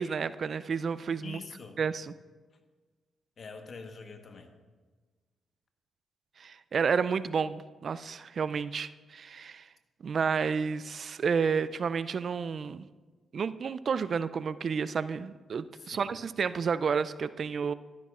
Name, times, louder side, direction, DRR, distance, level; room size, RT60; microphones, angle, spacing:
voice 1, 0.0-1.4 1.8-2.1 6.4-9.7 10.0-12.9 13.3-17.7, right 6 dB, 60° right, 16 dB, 0.3 m, -31 dB
voice 2, 1.2-1.8 3.4-4.5 15.7-16.1, left 4 dB, 55° left, 6 dB, 1.2 m, -45 dB
12.5 x 11.5 x 2.4 m, 1.4 s
supercardioid pair, 50°, 0 cm